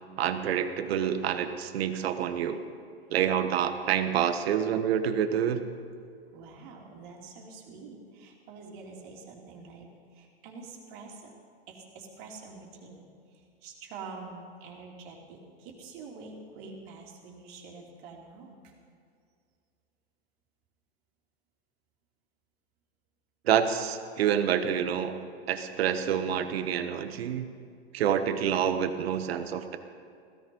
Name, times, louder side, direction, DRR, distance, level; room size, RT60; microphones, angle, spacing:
voice 1, 0.2-2.6 3.1-5.6 23.4-25.1 25.5-27.5 27.9-29.8, right 9 dB, 70° right, 9 dB, 1.3 m, -27 dB
voice 2, 6.3-11.4 11.7-18.7, right 4 dB, 50° right, -1 dB, 3.0 m, -46 dB
16.0 x 14.0 x 5.4 m, 2.3 s
hypercardioid pair, 130°, 31 cm